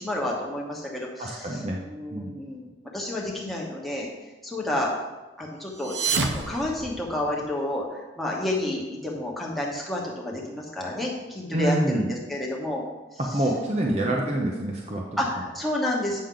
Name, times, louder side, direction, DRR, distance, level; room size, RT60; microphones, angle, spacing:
voice 1, 0.0-2.7 2.9-4.1 4.4-4.9 5.4-12.8 13.1-13.5 13.9-14.4 15.2-16.2, left 1 dB, ahead, -4 dB, 1.1 m, -30 dB
voice 2, 1.2-1.8 2.1-2.3 11.5-12.1 13.2-15.0, right 1 dB, 35° right, -1 dB, 0.7 m, -26 dB
sound 1, 5.7-7.6, right 5 dB, 70° right, 0.7 m, -29 dB
8.5 x 6.3 x 3.8 m, 1.1 s
head